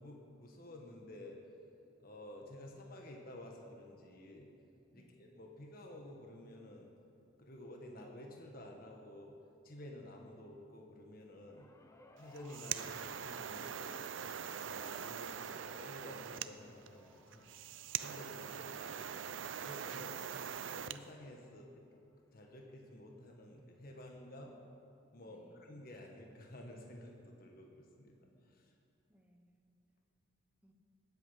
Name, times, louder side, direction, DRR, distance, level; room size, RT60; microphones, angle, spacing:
voice 1, 0.0-1.4 2.0-4.5 4.9-6.9 7.4-9.3 9.6-11.7 12.2-17.5 18.0-20.1 20.7-21.8 22.3-24.6 25.1-28.1 28.5-28.7, left 1 dB, 50° left, 1 dB, 1.4 m, -52 dB
sound 1, 11.5-21.9 23.0-23.1, left 1 dB, 15° left, 0.8 m, -62 dB
sound 2, 12.2-21.0, right 8 dB, 75° right, 0.5 m, -43 dB
voice 2, 25.2-25.7 28.0-28.5 29.1-29.6 30.6-30.7, equal, 5° right, 3 dB, 1.1 m, -68 dB
20.0 x 8.5 x 5.7 m, 2.6 s
head